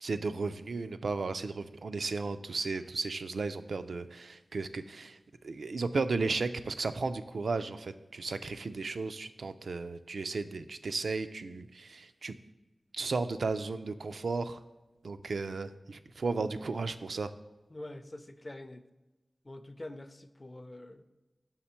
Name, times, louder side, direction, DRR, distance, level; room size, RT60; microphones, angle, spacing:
voice 1, 0.0-5.2 5.4-12.4 12.9-14.6 15.0-17.3, right 4 dB, 80° right, 11 dB, 0.3 m, -34 dB
voice 2, 17.7-18.9 19.4-21.0, left 1 dB, 35° left, 11 dB, 0.4 m, -45 dB
5.6 x 5.0 x 4.3 m, 1.1 s
wide cardioid pair, 70°, 0 cm